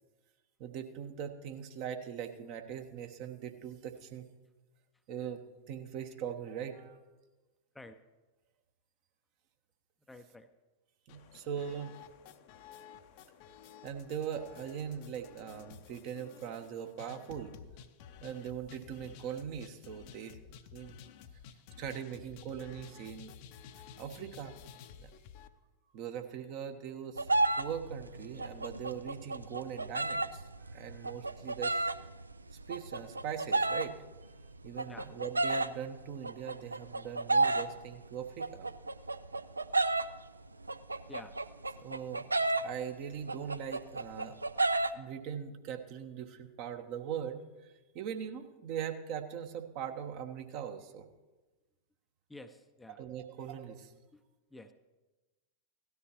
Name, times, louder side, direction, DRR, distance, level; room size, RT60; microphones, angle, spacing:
voice 1, 0.6-4.3 5.1-7.0 11.1-11.9 13.8-17.5 18.2-21.0 21.8-23.3 24.0-24.6 25.0-25.1 25.9-27.3 27.6-31.9 32.7-33.9 34.6-38.6 41.8-42.3 42.6-44.4 44.9-51.0 53.0-53.9, right 8 dB, 45° right, 7 dB, 1.0 m, -41 dB
voice 2, 10.1-10.5 34.9-35.1 41.1-41.3 52.3-53.0 54.1-54.2 54.5-54.7, left 2 dB, 5° left, 8 dB, 0.5 m, -50 dB
sound 1, 11.1-25.5, left 8 dB, 45° left, 0.6 m, -53 dB
sound 2, 27.2-40.2 40.5-44.9, right 2 dB, 80° right, 0.4 m, -32 dB
17.0 x 13.0 x 3.0 m, 1.2 s
figure-of-eight pair, 90°, 0 cm